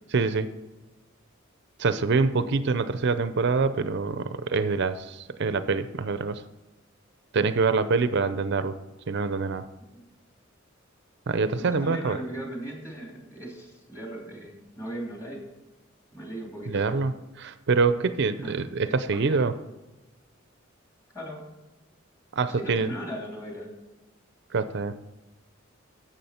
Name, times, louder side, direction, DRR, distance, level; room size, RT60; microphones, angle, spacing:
voice 1, 0.1-0.5 1.8-6.4 7.3-8.8 9.1-9.7 11.3-12.2 16.7-19.6 22.3-22.9 24.5-25.0, right 4 dB, 60° right, 12 dB, 0.5 m, -25 dB
voice 2, 11.7-15.4 16.1-17.1 18.4-18.5 18.9-19.4 21.1-21.5 22.6-23.7, right 1 dB, 15° left, -1 dB, 2.9 m, -38 dB
12.0 x 7.4 x 4.3 m, 1.1 s
head